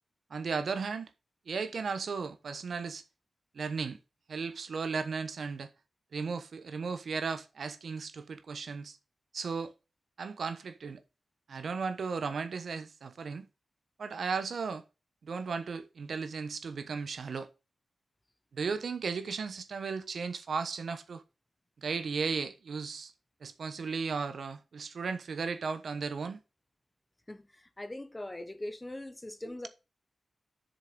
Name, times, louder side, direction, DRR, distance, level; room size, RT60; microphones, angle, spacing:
voice 1, 0.3-1.1 1.5-3.0 3.5-4.0 4.3-5.7 6.1-9.0 9.3-9.7 10.2-11.0 11.5-13.5 14.0-14.8 15.2-17.5 18.5-21.2 21.8-23.1 23.4-26.4, right 5 dB, 70° right, 1.0 m, -35 dB
voice 2, 27.3-29.7, left 1 dB, 15° left, 1.0 m, -41 dB
7.7 x 6.6 x 5.3 m
wide cardioid pair, 125°, 0 cm